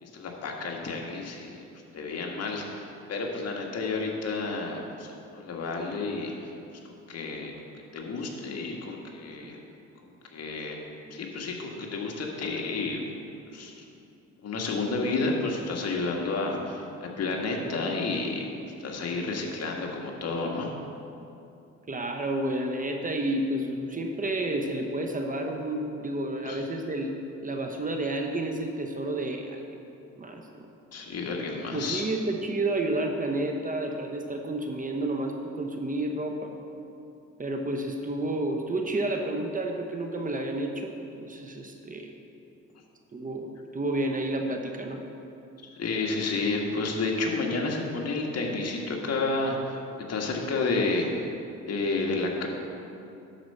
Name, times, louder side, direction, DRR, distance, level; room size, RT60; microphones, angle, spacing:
voice 1, 0.0-1.6 1.9-6.5 6.9-7.5 7.9-9.6 10.3-10.8 11.1-13.0 13.5-13.8 14.4-18.5 18.8-20.7 26.4-26.6 30.9-32.1 45.8-49.8 50.1-51.1 51.7-52.5, left 3 dB, 55° left, 0 dB, 1.6 m, -30 dB
voice 2, 21.9-27.1 27.4-29.8 30.2-30.7 31.7-36.5 37.4-42.1 43.1-45.0, right 1 dB, 25° right, 3 dB, 1.0 m, -30 dB
11.0 x 4.6 x 6.6 m, 2.8 s
cardioid pair, 90°, 30 cm